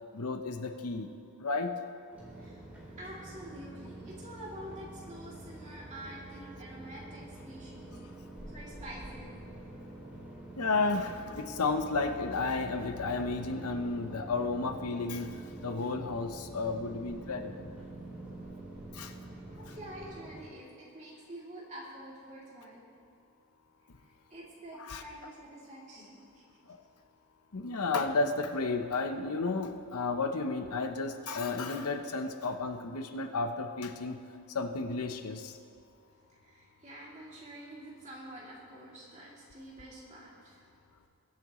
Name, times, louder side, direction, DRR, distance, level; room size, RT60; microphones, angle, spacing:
voice 1, 0.1-1.1 1.4-1.8 10.6-15.3 15.6-17.6 18.9-19.1 19.7-19.8 24.9-25.0 27.5-34.2 34.5-35.5, left 3 dB, 80° left, 6 dB, 0.8 m, -32 dB
sound 1, 2.1-20.4, right 1 dB, 5° right, 3.3 m, -46 dB
voice 2, 3.0-8.0 8.5-9.3 19.3-19.4 19.7-22.9 24.0-26.4 27.9-28.0 36.0-40.7, right 1 dB, 30° right, -5 dB, 2.9 m, -47 dB
22.0 x 8.6 x 3.1 m, 2.5 s
head